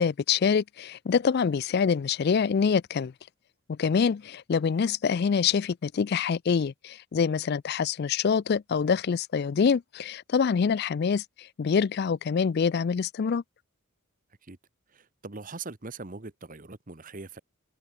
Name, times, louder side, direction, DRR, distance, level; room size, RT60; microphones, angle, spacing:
voice 1, 0.0-3.1 3.7-11.2 11.6-13.4, left 6 dB, 45° left, 0.3 m, -25 dB
voice 2, 14.9-17.4, right 3 dB, 40° right, 1.2 m, -41 dB
head